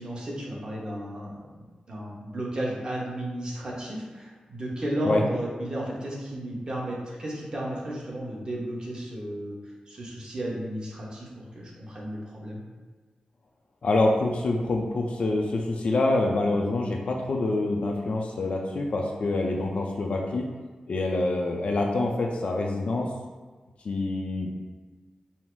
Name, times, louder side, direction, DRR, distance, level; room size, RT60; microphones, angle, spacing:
voice 1, 0.0-9.6 9.9-12.6 21.1-21.2, right 1 dB, 40° right, -4 dB, 1.0 m, -33 dB
voice 2, 13.8-20.5 20.9-23.1 23.8-24.5, left 2 dB, 60° left, 0 dB, 0.5 m, -26 dB
5.6 x 2.0 x 4.5 m, 1.4 s
wide cardioid pair, 165°, 2 cm